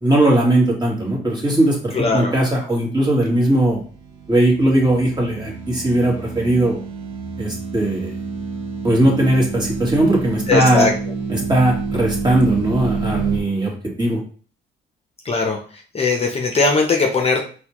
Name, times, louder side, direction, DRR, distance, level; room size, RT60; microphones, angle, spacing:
voice 1, 0.0-3.8 4.3-6.8 7.4-8.1 8.8-10.9 11.3-13.7 14.0-14.2, right 1 dB, 20° right, -2 dB, 1.5 m, -18 dB
voice 2, 2.0-2.3 10.5-10.9 15.3-15.6 15.9-17.4, left 3 dB, 30° left, 2 dB, 0.7 m, -19 dB
sound 1, 3.6-13.4, right 4 dB, 90° right, 0.7 m, -29 dB
4.0 x 2.2 x 3.0 m, 0.41 s
cardioid pair, 90°, 20 cm